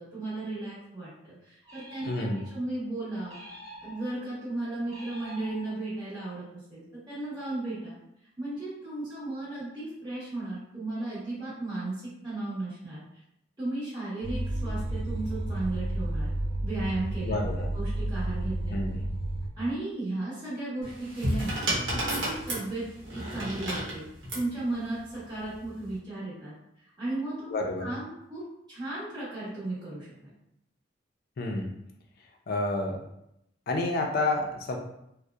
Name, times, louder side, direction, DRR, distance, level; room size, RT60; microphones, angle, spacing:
voice 1, 0.0-3.4 3.8-7.9 8.4-13.0 13.6-16.3 16.6-19.0 19.6-21.6 21.9-24.1 24.3-30.3, right 2 dB, 25° right, -11 dB, 0.8 m, -35 dB
sound 1, 1.6-2.7 3.2-4.3 4.9-6.1, equal, 10° left, 0.9 m, -47 dB
voice 2, 2.1-2.4 17.2-17.7 18.7-19.0 27.5-27.9 31.4-31.7 32.5-33.0 33.7-34.8, left 2 dB, 55° left, 2 dB, 0.4 m, -29 dB
sound 2, 14.2-19.5, right 1 dB, 40° right, 0.3 m, -31 dB
sound 3, 20.8-24.5 25.5-25.9, equal, 85° right, 0.8 m, -31 dB
2.7 x 2.0 x 2.3 m, 0.79 s
head